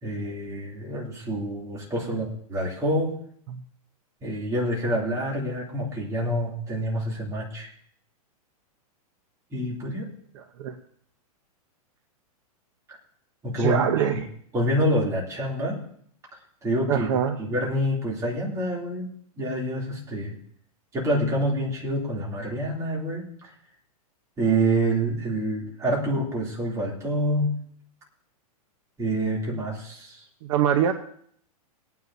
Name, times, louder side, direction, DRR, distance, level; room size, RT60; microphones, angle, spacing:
voice 1, 0.0-3.1 4.2-7.7 9.5-10.1 13.4-14.2 14.5-15.8 16.6-17.1 17.4-19.1 19.4-20.4 20.9-23.5 24.4-27.5 29.0-30.2, right 1 dB, 15° right, -3 dB, 2.9 m, -27 dB
voice 2, 10.3-10.8 13.6-14.2 16.9-17.3 30.4-30.9, right 9 dB, 55° right, 7 dB, 0.9 m, -23 dB
22.0 x 9.4 x 2.7 m, 0.63 s
supercardioid pair, 160°, 19 cm